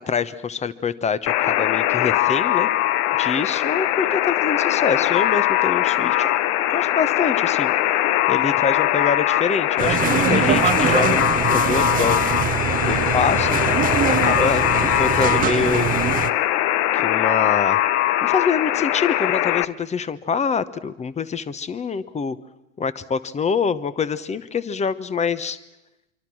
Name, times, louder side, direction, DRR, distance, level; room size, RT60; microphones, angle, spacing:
voice 1, 0.0-2.7 3.2-6.3 6.7-7.7 8.0-12.2 12.8-13.6 14.1-15.9 16.9-17.8 18.2-22.4 22.8-25.6, left 6 dB, 15° left, 16 dB, 1.0 m, -25 dB
Alarm, 1.3-19.6, left 14 dB, 40° left, 0.9 m, -21 dB
sound 1, 9.8-16.3, right 9 dB, 20° right, 0.9 m, -23 dB
26.5 x 24.5 x 6.2 m, 0.94 s
hypercardioid pair, 105°, 43 cm